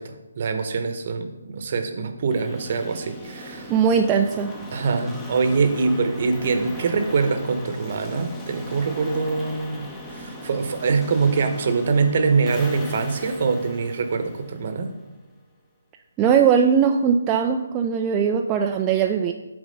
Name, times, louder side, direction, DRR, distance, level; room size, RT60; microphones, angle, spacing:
voice 1, 0.0-3.7 4.7-14.9, right 4 dB, 45° right, 7 dB, 0.9 m, -24 dB
sound 1, 2.3-15.2, equal, 10° left, 0.8 m, -39 dB
voice 2, 3.7-4.5 16.2-19.3, right 7 dB, 20° right, 3 dB, 0.3 m, -20 dB
8.3 x 3.5 x 5.2 m, 1.0 s
figure-of-eight pair, 145°, 0 cm